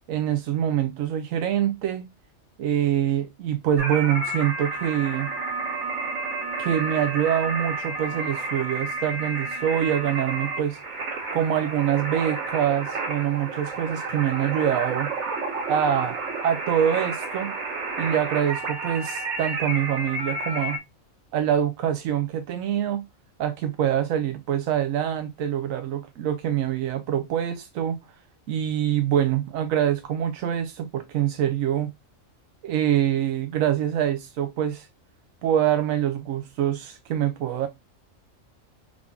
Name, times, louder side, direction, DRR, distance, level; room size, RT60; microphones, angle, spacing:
voice 1, 0.1-2.1 2.6-5.3 6.6-10.8 11.3-15.1 15.7-17.5 18.0-20.8 21.3-23.0 23.4-28.0 28.5-31.9 32.6-34.9 35.4-37.7, right 10 dB, 90° right, 1.0 m, -25 dB
sound 1, 3.8-20.8, right 3 dB, 60° right, 1.4 m, -31 dB
3.7 x 3.4 x 2.2 m
omnidirectional pair, 1.4 m